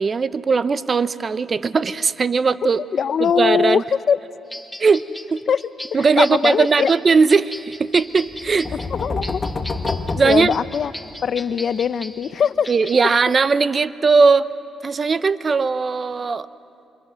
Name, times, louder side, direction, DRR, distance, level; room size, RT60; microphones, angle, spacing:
voice 1, 0.0-2.8 3.2-3.8 4.8-5.0 5.3-5.4 5.9-8.7 10.2-10.5 12.7-14.5 14.8-16.5, right 4 dB, 35° right, 15 dB, 0.7 m, -18 dB
voice 2, 2.9-4.2 5.5-6.9 8.9-9.4 10.2-10.9 11.2-12.7, left 7 dB, 55° left, 15 dB, 0.6 m, -21 dB
sound 1, 4.5-13.1, left 1 dB, 5° left, 1.3 m, -37 dB
sound 2, 8.3-11.2, left 3 dB, 30° left, 1.5 m, -28 dB
28.5 x 26.5 x 6.3 m, 2.5 s
cardioid pair, 90°, 0 cm